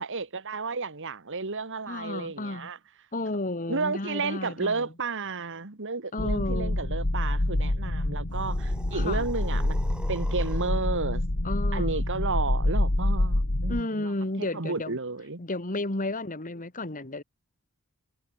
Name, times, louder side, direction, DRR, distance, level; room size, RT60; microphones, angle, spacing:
voice 1, 0.0-2.8 3.7-9.8 10.1-11.2 11.7-14.1 14.4-15.4, right 4 dB, 60° right, 1.9 m, -32 dB
voice 2, 1.9-2.7 3.1-4.9 6.1-6.8 8.9-9.2 11.4-12.0 13.7-15.0 15.4-17.2, left 2 dB, 35° left, 2.1 m, -32 dB
sound 1, 6.2-13.8, left 1 dB, 70° left, 2.2 m, -27 dB
sound 2, 8.3-10.9, right 1 dB, 5° right, 2.7 m, -46 dB
head